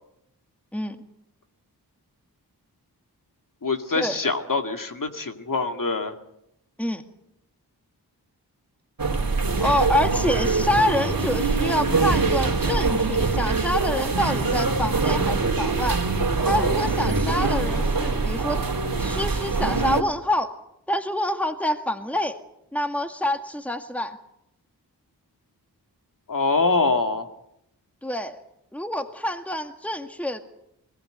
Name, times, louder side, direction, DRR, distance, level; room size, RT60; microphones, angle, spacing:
voice 1, 3.6-6.1 26.3-27.3, left 3 dB, 55° left, 5 dB, 2.4 m, -24 dB
sound 1, 9.0-20.0, right 3 dB, 55° right, 3.1 m, -23 dB
voice 2, 9.6-16.0 16.4-18.6 19.0-20.5 20.9-22.4 22.7-24.2 28.0-28.4 28.7-30.4, left 1 dB, 5° left, 6 dB, 2.0 m, -26 dB
22.0 x 19.5 x 8.1 m, 0.79 s
wide cardioid pair, 55°, 39 cm